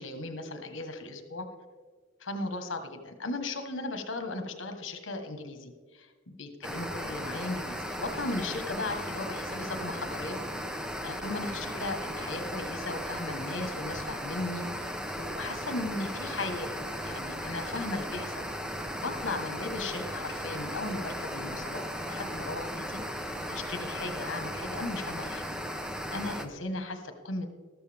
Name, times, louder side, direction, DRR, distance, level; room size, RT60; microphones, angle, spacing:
voice 1, 0.0-1.5 2.2-10.4 10.7-23.0 23.5-25.5 26.1-27.5, left 2 dB, 75° left, 7 dB, 1.4 m, -37 dB
sound 1, 6.6-26.5, equal, 5° right, 0.7 m, -36 dB
13.5 x 12.5 x 3.5 m, 1.5 s
head